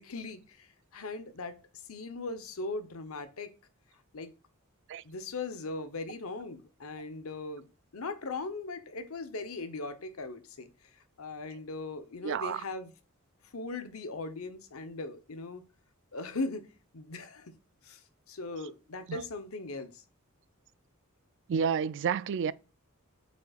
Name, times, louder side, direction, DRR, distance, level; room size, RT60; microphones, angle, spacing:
voice 1, 0.0-1.6 1.9-3.5 4.1-4.3 5.0-7.6 7.9-12.9 13.5-15.6 16.1-16.7 16.9-17.5 17.8-20.0, left 3 dB, 80° left, 0.9 m, -39 dB
voice 2, 12.2-12.6 19.1-19.2 21.5-22.5, right 7 dB, 60° right, 0.4 m, -30 dB
7.8 x 5.4 x 2.4 m
head